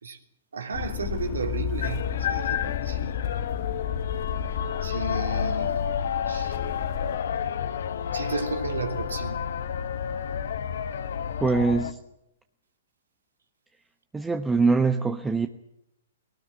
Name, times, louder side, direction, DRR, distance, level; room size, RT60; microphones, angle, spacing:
voice 1, 0.5-3.2 4.8-5.8 6.3-6.6 8.1-9.4, right 4 dB, 85° right, 3.2 m, -33 dB
sound 1, 0.7-7.2, left 9 dB, 45° left, 1.7 m, -33 dB
sound 2, 1.8-11.9, left 8 dB, 70° left, 1.3 m, -30 dB
voice 2, 11.4-12.0 14.1-15.5, right 4 dB, 10° right, 1.0 m, -23 dB
20.0 x 18.5 x 8.9 m
hypercardioid pair, 130°, 0 cm